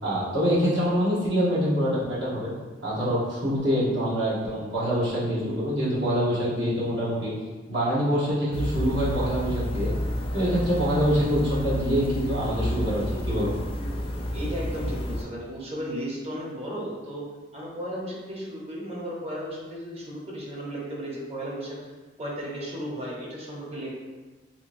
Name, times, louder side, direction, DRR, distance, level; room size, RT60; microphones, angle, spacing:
voice 1, 0.0-2.5 2.8-7.3 7.7-9.9 10.3-13.5, equal, 70° right, -8 dB, 1.2 m, -25 dB
sound 1, 8.5-15.2, equal, 30° left, 0.4 m, -30 dB
voice 2, 14.3-17.2 17.5-21.8 22.2-23.9, equal, 35° right, -4 dB, 0.7 m, -35 dB
3.0 x 2.9 x 2.6 m, 1.3 s
head